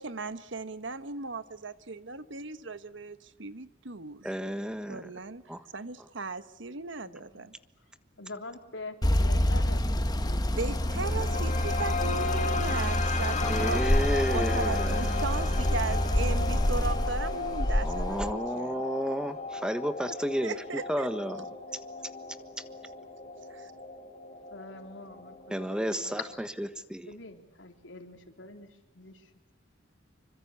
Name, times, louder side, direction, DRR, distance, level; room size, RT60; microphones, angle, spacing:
voice 1, 0.0-4.3 4.9-7.5 10.5-13.8 14.3-18.8 20.4-21.1 23.5-23.7, right 3 dB, 75° right, 1.3 m, -37 dB
voice 2, 4.2-5.1 5.5-5.7 13.5-15.2 17.8-20.5 20.9-21.4 25.5-26.2 26.6-27.1, equal, 5° right, 1.4 m, -32 dB
voice 3, 7.0-7.5 8.2-11.6 12.3-12.9 24.5-26.2 27.1-29.3, left 3 dB, 75° left, 3.8 m, -45 dB
sound 1, 9.0-18.3, left 1 dB, 20° left, 1.3 m, -27 dB
sound 2, 10.4-26.4, left 3 dB, 40° left, 4.7 m, -36 dB
27.0 x 25.0 x 8.4 m
head